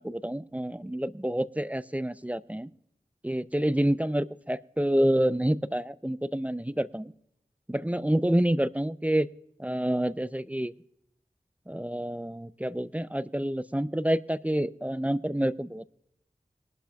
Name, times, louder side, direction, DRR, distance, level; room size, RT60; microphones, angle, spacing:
voice 1, 0.0-2.7 3.2-7.1 7.7-9.3 9.6-10.7 11.7-15.9, right 1 dB, 10° right, 16 dB, 0.4 m, -28 dB
22.0 x 11.5 x 2.3 m, 0.79 s
wide cardioid pair, 50°, 14 cm